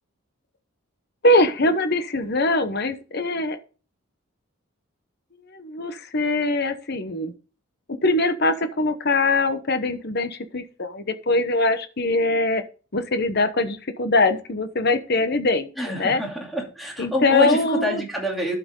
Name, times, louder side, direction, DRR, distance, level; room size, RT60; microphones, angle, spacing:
voice 1, 1.2-3.6 5.5-7.3 8.0-12.6 12.9-15.7 16.0-16.2 17.0-18.0, left 2 dB, 50° left, 9 dB, 1.0 m, -22 dB
voice 2, 15.8-18.5, equal, ahead, -2 dB, 2.6 m, -26 dB
12.0 x 5.9 x 3.8 m, 0.35 s
head